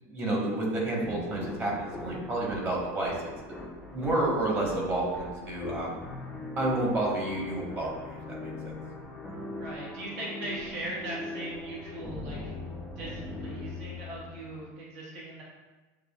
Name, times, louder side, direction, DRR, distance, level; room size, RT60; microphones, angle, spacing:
voice 1, 0.0-3.1 3.9-5.9 6.6-8.7, right 2 dB, 25° right, -3 dB, 1.1 m, -30 dB
sound 1, 1.0-14.7, left 2 dB, 5° left, 0.5 m, -41 dB
voice 2, 9.6-12.6 13.0-15.4, right 1 dB, 70° right, -5 dB, 1.2 m, -39 dB
7.3 x 2.4 x 2.3 m, 1.2 s
supercardioid pair, 150°, 8 cm